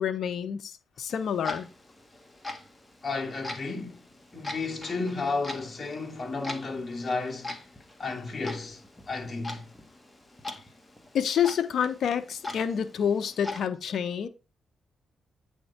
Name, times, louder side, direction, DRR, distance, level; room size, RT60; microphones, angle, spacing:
voice 1, 0.0-1.7 11.1-14.3, left 8 dB, 70° left, 0.9 m, -28 dB
Clock, 1.1-13.7, left 2 dB, 15° left, 1.8 m, -42 dB
voice 2, 3.0-4.1 4.3-7.6 8.0-9.6, left 3 dB, 35° left, 2.8 m, -33 dB
8.6 x 3.7 x 4.3 m
supercardioid pair, 60°, 0 cm